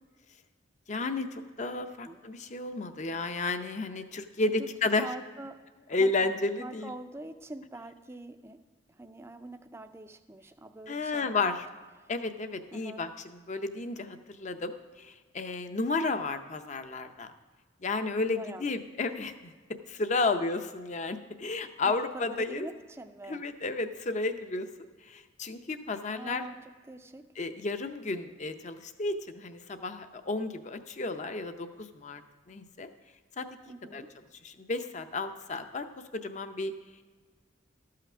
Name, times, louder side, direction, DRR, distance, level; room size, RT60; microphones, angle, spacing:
voice 1, 0.9-5.1 5.9-6.9 10.9-11.7 12.1-17.3 17.8-19.5 19.9-22.7 23.3-24.7 25.0-26.4 27.4-32.2 32.5-32.9 33.4-33.5 33.9-34.0 34.4-35.9 36.1-36.7, left 3 dB, 35° left, 9 dB, 0.6 m, -32 dB
voice 2, 5.0-5.6 5.9-6.1 6.6-8.6 8.9-11.4 12.0-12.1 12.7-13.0 18.2-18.7 21.8-23.4 26.1-26.6 26.9-27.3 33.7-34.1, right 2 dB, 15° right, 8 dB, 0.4 m, -44 dB
13.5 x 5.8 x 6.0 m, 1.4 s
head